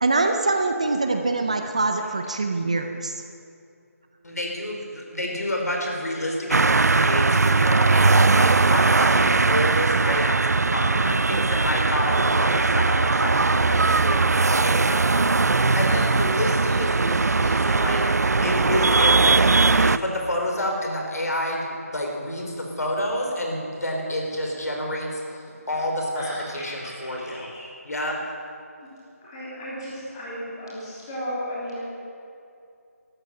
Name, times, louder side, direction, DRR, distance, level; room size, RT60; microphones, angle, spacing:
voice 1, 0.0-3.2, right 3 dB, 25° right, 5 dB, 0.6 m, -24 dB
voice 2, 4.2-15.3 15.8-18.1 18.4-27.5 27.8-28.2, left 1 dB, 80° left, 1 dB, 4.4 m, -29 dB
sound 1, 6.5-20.0, right 3 dB, 85° right, 0.5 m, -20 dB
voice 3, 26.2-26.9 27.3-27.7 29.2-31.8, equal, 15° left, -8 dB, 3.4 m, -35 dB
13.5 x 13.0 x 7.9 m, 2.5 s
figure-of-eight pair, 175°, 8 cm